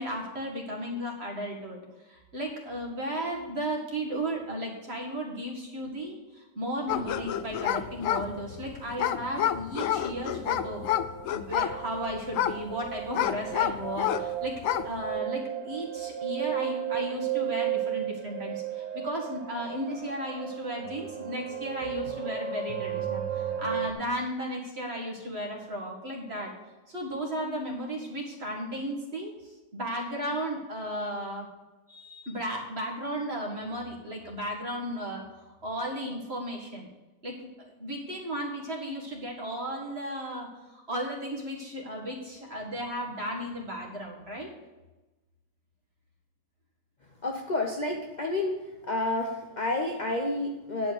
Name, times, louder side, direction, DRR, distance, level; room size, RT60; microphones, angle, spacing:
voice 1, 0.0-10.8 11.3-14.5 14.8-26.5 26.9-31.5 31.9-35.2 35.6-36.9 37.2-44.5, equal, 35° right, -1 dB, 2.1 m, -35 dB
sound 1, 6.9-14.3 14.6-15.0, left 11 dB, 85° left, 0.7 m, -29 dB
sound 2, 8.4-8.5 9.0-9.6 9.9-23.9, right 10 dB, 75° right, 1.6 m, -35 dB
voice 2, 47.2-48.6 48.9-50.9, left 2 dB, 40° left, 2 dB, 0.6 m, -29 dB
11.5 x 4.5 x 8.2 m, 1.1 s
omnidirectional pair, 1.9 m